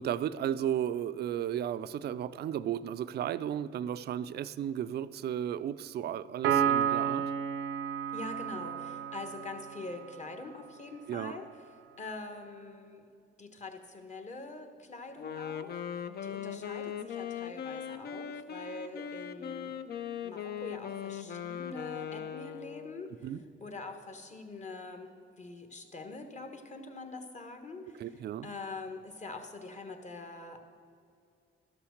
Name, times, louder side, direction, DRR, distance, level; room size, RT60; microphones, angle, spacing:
voice 1, 0.0-7.2 11.1-11.4 23.2-23.4 27.9-28.5, right 10 dB, 55° right, 14 dB, 0.4 m, -34 dB
Piano, 6.4-10.0, right 8 dB, 90° right, 0.7 m, -31 dB
voice 2, 8.1-11.5 12.0-13.0 13.4-19.7 20.2-23.3 23.6-28.1 28.4-30.6, left 3 dB, 35° left, 5 dB, 1.2 m, -44 dB
Wind instrument woodwind instrument, 15.2-23.1, left 8 dB, 55° left, 0.5 m, -39 dB
12.0 x 5.9 x 6.4 m, 2.4 s
cardioid pair, 90°, 20 cm